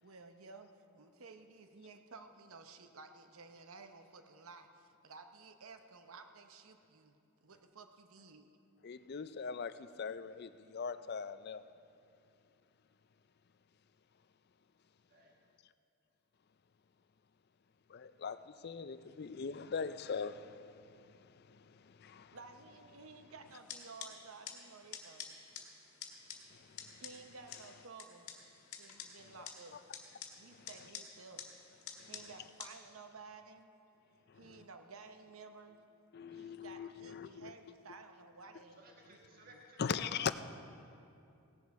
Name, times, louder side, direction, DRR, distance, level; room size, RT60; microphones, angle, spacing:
voice 1, 0.0-8.5 22.3-25.4 27.0-28.3 28.8-29.8 30.3-31.5 32.1-33.7 34.3-35.8 36.3-39.6, right 4 dB, 70° right, 0.8 m, -54 dB
voice 2, 8.8-11.6 17.9-22.4 26.5-27.0 29.7-29.8 30.5-30.7 32.0-32.1 34.3-34.7 36.1-37.5 39.8-40.3, left 6 dB, 45° left, 0.4 m, -41 dB
voice 3, 15.1-15.4 38.8-40.1, right 1 dB, 40° right, 1.5 m, -57 dB
sound 1, 23.5-32.7, left 7 dB, 75° left, 1.7 m, -50 dB
17.0 x 11.0 x 4.7 m
head